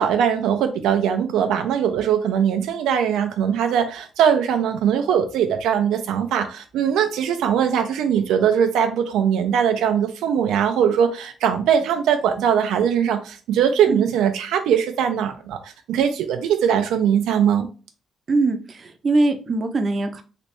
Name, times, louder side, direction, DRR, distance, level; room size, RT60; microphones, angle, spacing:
voice 1, 0.0-17.7, right 8 dB, 90° right, 0.4 m, -21 dB
voice 2, 18.3-20.2, right 2 dB, 40° right, 0.6 m, -22 dB
3.2 x 2.9 x 3.0 m
cardioid pair, 90°, 0 cm